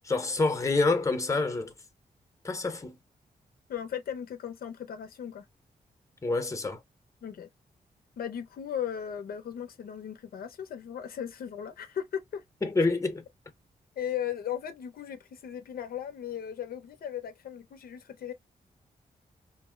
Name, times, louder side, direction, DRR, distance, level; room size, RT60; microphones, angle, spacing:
voice 1, 0.0-1.7 2.4-3.0 6.2-6.8 12.6-13.2, left 3 dB, 20° left, 0.8 m, -27 dB
voice 2, 3.7-5.4 7.2-7.5 8.2-12.4 14.0-18.3, left 9 dB, 80° left, 0.6 m, -37 dB
2.6 x 2.0 x 3.6 m
cardioid pair, 90°, 15 cm